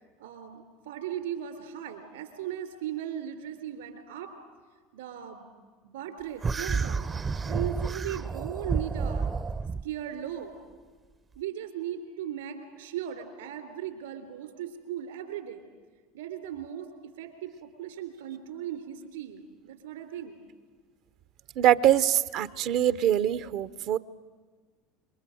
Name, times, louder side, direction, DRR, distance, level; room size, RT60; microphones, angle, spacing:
voice 1, 0.2-4.3 4.9-5.5 5.8-7.1 7.4-9.3 9.8-10.6 11.3-15.6 16.1-20.4, right 10 dB, 80° right, 6 dB, 3.3 m, -37 dB
sound 1, 6.4-9.9, right 5 dB, 25° right, 0.7 m, -30 dB
voice 2, 21.6-24.0, right 11 dB, 55° right, 15 dB, 0.8 m, -23 dB
27.0 x 22.5 x 7.8 m, 1.4 s
hypercardioid pair, 75°, 0 cm